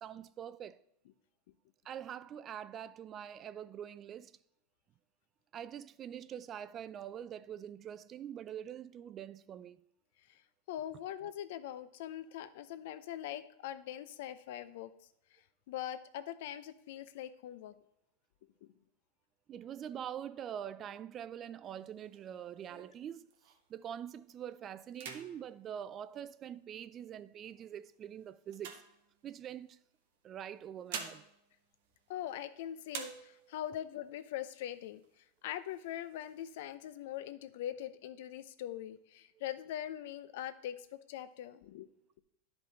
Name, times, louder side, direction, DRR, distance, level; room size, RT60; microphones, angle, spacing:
voice 1, 0.0-0.8 1.8-4.4 5.5-9.8 19.5-23.3 23.7-28.8 29.2-29.8 30.2-31.3, right 9 dB, 30° right, 0.3 m, -44 dB
voice 2, 10.7-14.9 15.3-17.7 18.6-18.7 32.1-35.0 35.4-41.9, left 11 dB, 70° left, 0.6 m, -42 dB
sound 1, 21.6-23.8 24.3-24.5 24.9-26.8 27.5-29.6 30.5-32.5 32.9-33.7 34.2-34.3 34.5-35.2 35.7-36.6, right 6 dB, 70° right, 1.3 m, -49 dB
10.5 x 5.2 x 4.1 m
supercardioid pair, 125°, 0 cm